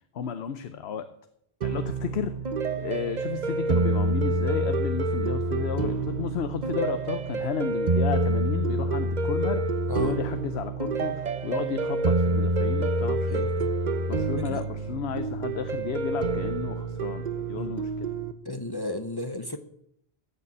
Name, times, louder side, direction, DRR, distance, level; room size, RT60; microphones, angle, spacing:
voice 1, 0.1-1.1 1.6-2.3 2.8-13.5 14.1-18.1, left 7 dB, 75° left, 10 dB, 1.0 m, -33 dB
sound 1, 1.6-18.3, right 2 dB, 45° right, 0.9 m, -27 dB
voice 2, 13.3-13.7 14.4-14.6 17.5-17.7 18.4-19.6, left 1 dB, 25° left, 8 dB, 0.8 m, -34 dB
15.5 x 6.8 x 8.6 m, 0.74 s
omnidirectional pair, 1.1 m